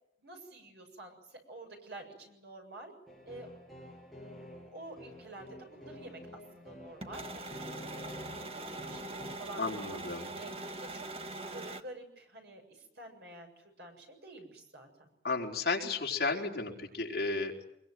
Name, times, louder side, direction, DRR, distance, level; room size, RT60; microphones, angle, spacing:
voice 1, 0.2-2.9 3.3-3.5 4.6-7.6 8.3-11.1 11.5-15.1, right 2 dB, 70° right, 3 dB, 7.4 m, -49 dB
sound 1, 3.1-9.4, left 1 dB, ahead, 7.6 m, -49 dB
sound 2, 7.0-11.8, right 2 dB, 35° right, 1.4 m, -42 dB
voice 2, 9.6-10.3 15.2-17.6, left 3 dB, 55° left, 0 dB, 4.3 m, -33 dB
25.0 x 23.0 x 9.3 m, 0.80 s
head